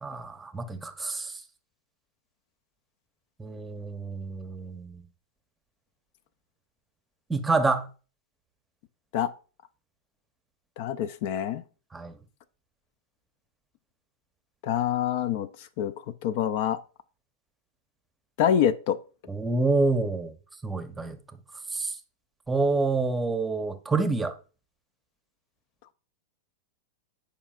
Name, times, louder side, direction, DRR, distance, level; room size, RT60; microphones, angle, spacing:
voice 1, 0.0-1.4 3.4-5.1 7.3-7.9 11.9-12.1 19.3-20.4 20.6-21.2 21.7-22.0 22.5-24.3, right 3 dB, 10° right, 0.8 m, -27 dB
voice 2, 10.8-11.6 14.6-15.5 15.8-15.9 16.2-16.8 18.4-19.0, left 9 dB, 55° left, 0.5 m, -25 dB
9.9 x 5.0 x 2.4 m
hypercardioid pair, 120°, 0 cm